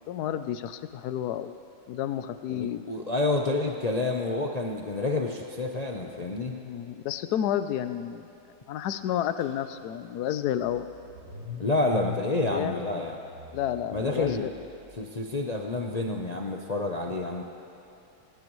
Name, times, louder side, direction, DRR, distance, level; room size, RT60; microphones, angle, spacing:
voice 1, 0.1-1.6 1.9-2.8 6.5-8.3 8.7-10.9 12.2-13.0 13.5-14.5, left 10 dB, 70° left, 11 dB, 1.1 m, -31 dB
voice 2, 2.5-6.6 11.6-13.2 13.9-14.5 15.0-17.4, left 2 dB, 50° left, 1 dB, 0.5 m, -29 dB
Car / Engine starting, 9.4-9.5 9.8-15.0, left 4 dB, 65° right, 3.7 m, -42 dB
20.0 x 18.5 x 3.1 m, 3.0 s
omnidirectional pair, 1.9 m